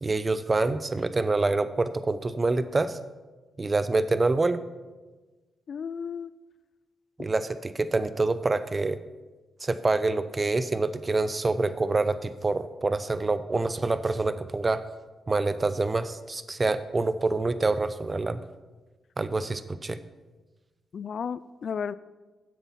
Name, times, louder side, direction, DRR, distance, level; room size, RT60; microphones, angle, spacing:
voice 1, 0.0-3.0 3.6-4.6 7.2-9.0 9.6-14.8 15.3-18.4 19.2-20.0, right 3 dB, 35° right, 13 dB, 0.7 m, -26 dB
voice 2, 5.7-6.3 20.9-21.9, left 6 dB, 60° left, 18 dB, 0.3 m, -33 dB
9.4 x 8.0 x 5.8 m, 1.2 s
hypercardioid pair, 45°, 0 cm